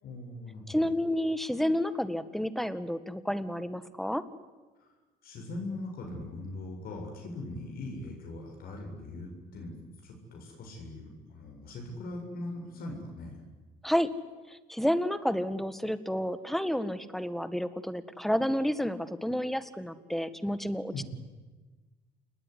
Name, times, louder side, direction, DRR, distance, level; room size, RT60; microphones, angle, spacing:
voice 1, 0.0-0.9 4.8-4.9 5.2-9.7 10.0-13.4 20.9-21.0, left 2 dB, 60° left, 1 dB, 7.5 m, -40 dB
voice 2, 0.7-4.2 13.8-14.1 14.5-20.9, equal, ahead, 13 dB, 1.7 m, -30 dB
28.5 x 20.5 x 10.0 m, 1.3 s
cardioid pair, 110°, 17 cm